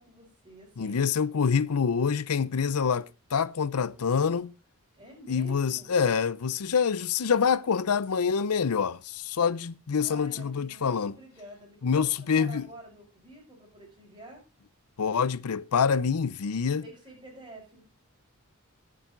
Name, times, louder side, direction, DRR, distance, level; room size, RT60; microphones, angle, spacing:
voice 1, 0.0-1.0 4.9-6.0 10.0-14.4 16.8-17.8, right 1 dB, 20° right, 6.0 m, -49 dB
voice 2, 0.8-4.5 5.3-11.1 11.8-12.7 15.0-16.8, left 6 dB, 85° left, 0.6 m, -26 dB
19.5 x 7.6 x 3.8 m
head